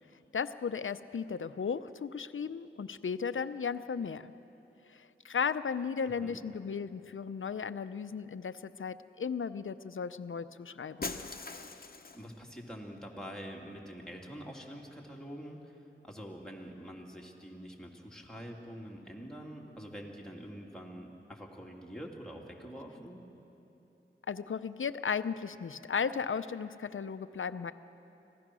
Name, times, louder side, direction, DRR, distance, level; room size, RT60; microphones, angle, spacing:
voice 1, 0.3-4.3 4.9-11.2 24.3-27.7, left 6 dB, 75° left, 12 dB, 0.6 m, -35 dB
voice 2, 6.0-6.4 12.1-15.8 16.0-23.2, equal, 5° left, -2 dB, 2.9 m, -46 dB
Shatter, 11.0-12.4, left 3 dB, 45° left, 1.0 m, -41 dB
25.5 x 16.5 x 6.2 m, 3.0 s
cardioid pair, 45°, 21 cm